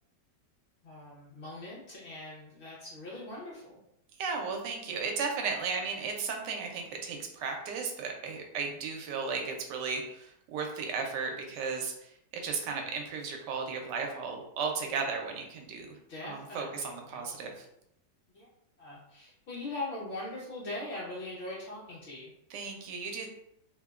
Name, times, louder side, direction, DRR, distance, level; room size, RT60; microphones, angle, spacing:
voice 1, 0.8-3.8 16.1-17.2 18.3-18.5 18.8-22.3, left 2 dB, 85° left, -6 dB, 0.5 m, -41 dB
voice 2, 4.2-16.0 16.2-17.6 22.5-23.3, right 5 dB, 80° right, 2 dB, 1.2 m, -35 dB
3.1 x 2.1 x 2.3 m, 0.77 s
omnidirectional pair, 1.9 m